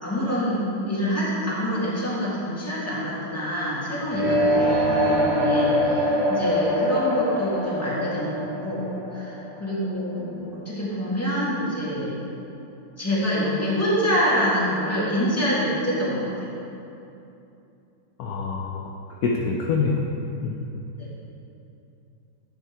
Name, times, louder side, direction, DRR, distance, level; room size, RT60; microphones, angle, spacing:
voice 1, 0.0-12.1 13.0-16.5 21.0-21.1, equal, 10° left, -8 dB, 1.8 m, -26 dB
sound 1, 4.1-10.0, equal, 55° right, 1.4 m, -23 dB
voice 2, 18.2-18.8 19.2-20.0 20.4-20.5, left 4 dB, 70° left, -1 dB, 0.9 m, -25 dB
9.4 x 5.6 x 4.7 m, 2.8 s
omnidirectional pair, 2.2 m